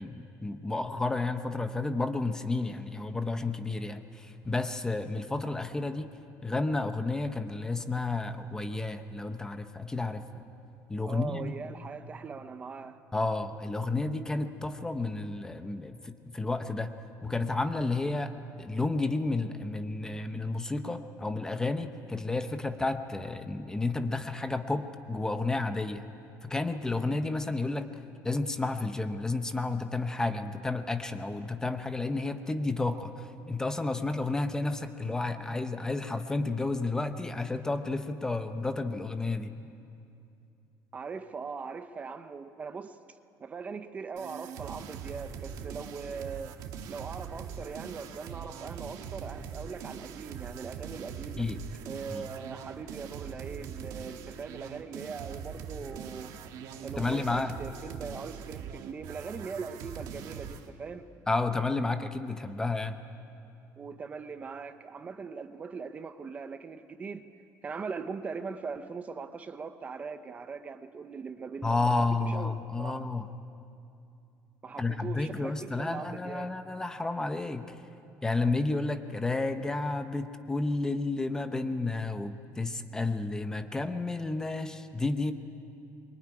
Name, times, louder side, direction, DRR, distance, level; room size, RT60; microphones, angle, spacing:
voice 1, 0.0-6.1 6.4-10.4 10.9-11.5 13.1-16.9 17.2-18.3 18.6-26.1 26.4-27.9 28.2-39.5 51.4-51.6 52.1-52.2 57.0-57.5 61.3-63.0 71.6-73.3 74.8-77.8 78.2-85.3, left 3 dB, 10° left, 8 dB, 0.8 m, -31 dB
voice 2, 11.0-13.0 40.9-43.0 43.4-46.6 46.9-51.5 51.8-56.4 56.8-61.1 63.8-67.3 67.6-73.0 74.6-76.5, right 5 dB, 20° right, 9 dB, 0.8 m, -40 dB
sound 1, 44.2-60.7, right 7 dB, 65° right, 1.5 m, -42 dB
24.5 x 23.0 x 9.8 m, 2.6 s
cardioid pair, 175°, 7 cm